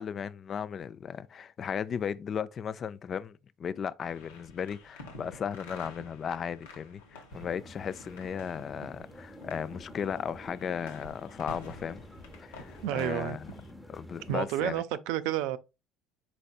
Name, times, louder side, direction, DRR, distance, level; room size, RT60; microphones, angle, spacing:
voice 1, 0.0-12.0 12.4-13.5 13.9-14.8, left 7 dB, 40° left, 0.3 m, -36 dB
sound 1, 4.0-13.7, left 2 dB, 80° left, 0.9 m, -50 dB
sound 2, 7.3-14.5, left 1 dB, 5° left, 0.9 m, -49 dB
voice 2, 12.8-13.4 14.3-15.6, right 13 dB, 70° right, 0.4 m, -30 dB
4.2 x 4.1 x 2.3 m
hypercardioid pair, 70°, 0 cm